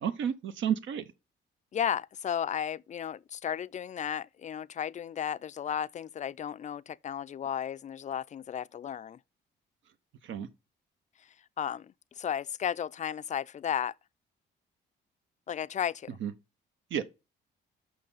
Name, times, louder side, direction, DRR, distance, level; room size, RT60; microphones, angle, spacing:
voice 1, 0.0-1.0 10.2-10.5 16.2-16.3 16.9-17.0, right 9 dB, 75° right, 0.8 m, -31 dB
voice 2, 1.7-9.2 11.2-13.9 15.5-16.2, left 9 dB, 40° left, 0.4 m, -34 dB
6.5 x 5.8 x 5.5 m
cardioid pair, 90°, 20 cm